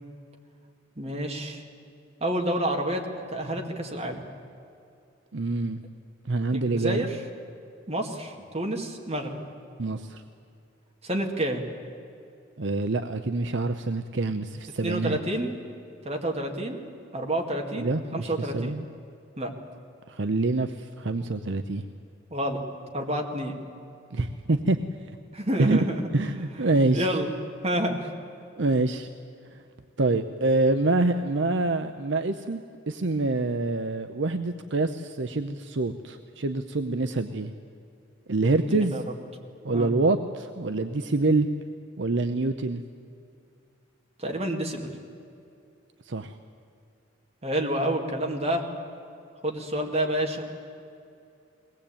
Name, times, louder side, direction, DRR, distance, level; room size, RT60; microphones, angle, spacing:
voice 1, 1.0-1.6 2.2-4.2 6.5-7.1 7.9-9.4 11.0-11.6 14.8-15.5 16.0-16.8 17.1-18.8 19.4-19.5 22.3-22.6 22.9-23.5 25.3-26.1 26.5-27.3 27.6-28.1 38.7-39.0 39.7-39.9 44.2-44.9 47.4-48.6 49.4-50.5, right 1 dB, 35° right, 1 dB, 2.2 m, -29 dB
voice 2, 5.3-5.8 6.3-7.1 9.8-10.2 12.6-15.2 17.7-18.8 20.1-21.8 24.1-24.8 25.6-25.8 26.1-27.1 28.6-29.1 29.5-29.6 30.0-32.6 32.9-37.5 38.3-38.9 39.6-41.5 42.0-42.8 46.1-46.3, right 2 dB, 65° right, 8 dB, 0.7 m, -26 dB
22.0 x 18.5 x 8.7 m, 2.6 s
head